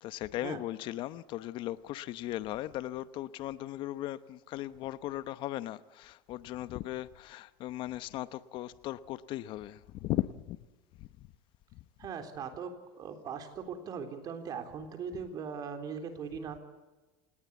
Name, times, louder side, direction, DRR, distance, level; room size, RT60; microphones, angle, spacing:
voice 1, 0.0-10.6 11.0-11.1 11.7-11.8, left 14 dB, 50° left, 0.9 m, -37 dB
voice 2, 12.0-16.6, right 6 dB, 40° right, 3.8 m, -40 dB
27.5 x 19.5 x 8.3 m
supercardioid pair, 135°, 10 cm